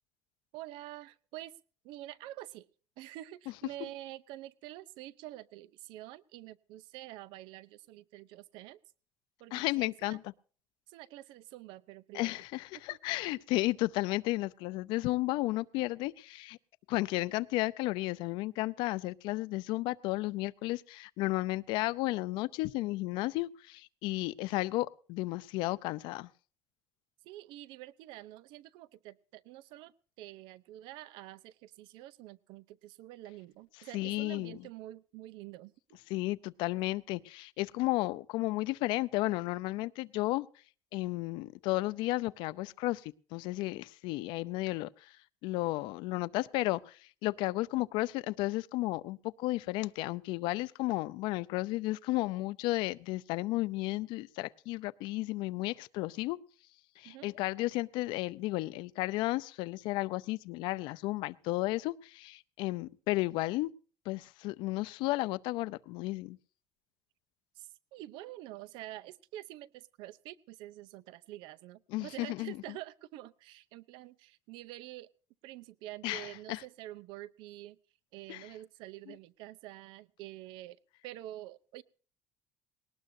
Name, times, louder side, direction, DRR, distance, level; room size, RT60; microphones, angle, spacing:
voice 1, 0.5-1.5 1.8-2.7 3.0-8.8 9.4-10.2 10.9-12.4 12.9-13.0 27.2-35.7 47.7-47.9 57.0-57.3 67.6-75.1 75.4-77.8 78.1-81.8, right 15 dB, 85° right, 0.6 m, -47 dB
voice 2, 9.5-10.2 12.1-16.6 16.9-26.3 33.9-34.6 36.1-40.5 40.9-45.1 45.4-56.4 57.0-63.7 64.1-66.4 71.9-72.5 76.0-76.6 78.3-78.4, left 19 dB, 85° left, 0.6 m, -33 dB
19.5 x 18.5 x 2.7 m
cardioid pair, 175°, 8 cm